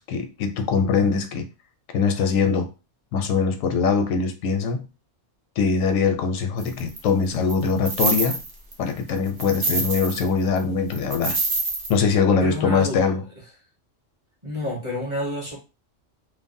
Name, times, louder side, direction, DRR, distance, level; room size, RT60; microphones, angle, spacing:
voice 1, 0.0-1.5 1.9-2.7 3.1-4.9 5.6-8.4 8.8-11.4 11.9-13.2, left 5 dB, 85° left, 6 dB, 1.0 m, -22 dB
sound 1, 6.6-7.0 7.5-8.7 9.1-10.3 10.6-10.7 10.9-11.9, right 3 dB, 50° right, 0.8 m, -26 dB
voice 2, 12.4-13.0 14.4-15.6, left 1 dB, 25° right, -4 dB, 1.0 m, -29 dB
3.1 x 2.1 x 2.6 m, 0.29 s
omnidirectional pair, 1.3 m